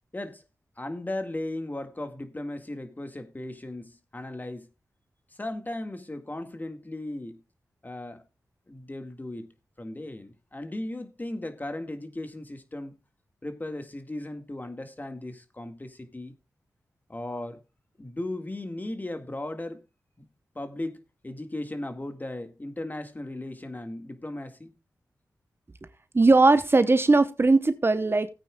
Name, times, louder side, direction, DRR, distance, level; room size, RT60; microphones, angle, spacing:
voice 1, 0.1-0.4 0.8-4.7 5.3-7.4 7.8-8.2 8.7-9.5 9.8-12.9 13.4-16.4 17.1-17.6 18.0-19.8 20.2-20.3 20.5-24.7, left 1 dB, 30° left, 1.8 m, -36 dB
voice 2, 26.1-28.3, right 3 dB, 35° right, 0.8 m, -19 dB
17.5 x 8.9 x 2.3 m
cardioid pair, 50°, 6 cm